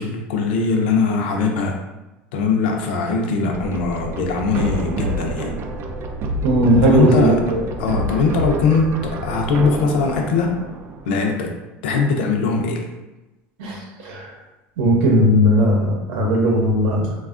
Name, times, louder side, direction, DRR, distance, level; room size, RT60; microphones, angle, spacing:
voice 1, 0.0-1.8 2.3-5.6 6.8-7.4 7.8-10.6 11.0-11.5 11.8-12.9, left 4 dB, 85° left, 2 dB, 0.4 m, -20 dB
sound 1, 3.5-11.1, right 1 dB, 45° right, 0.4 m, -28 dB
voice 2, 6.4-7.6 13.6-14.3 14.8-17.1, equal, 80° right, -1 dB, 0.8 m, -17 dB
3.3 x 2.2 x 2.4 m, 1.1 s
supercardioid pair, 115°, 6 cm